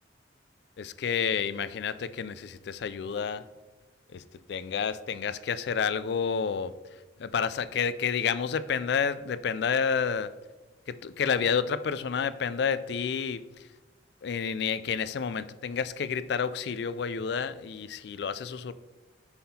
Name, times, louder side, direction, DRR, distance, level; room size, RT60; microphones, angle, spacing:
voice 1, 0.8-3.4 4.1-4.2 4.5-6.7 7.2-10.3 10.9-13.4 14.2-18.7, left 6 dB, 60° left, 15 dB, 0.3 m, -29 dB
5.7 x 5.6 x 4.2 m, 1.2 s
head